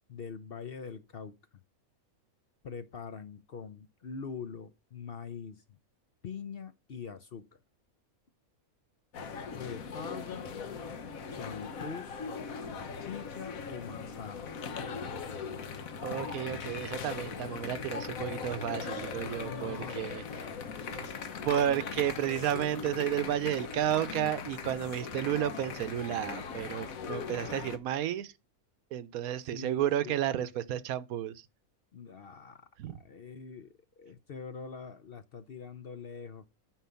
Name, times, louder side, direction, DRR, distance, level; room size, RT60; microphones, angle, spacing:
voice 1, 0.1-1.4 2.6-5.6 6.2-7.6 9.5-10.5 11.3-12.2 13.0-14.6 19.4-21.6 29.5-30.5 31.9-32.6 32.9-36.5, left 6 dB, 50° left, 0.8 m, -44 dB
sound 1, 9.1-27.8, left 6 dB, 70° left, 1.4 m, -39 dB
voice 2, 16.0-20.2 20.9-21.1 21.4-28.3 28.9-31.3 32.8-33.0, right 11 dB, 75° right, 1.1 m, -32 dB
9.0 x 4.8 x 6.9 m
omnidirectional pair, 1.5 m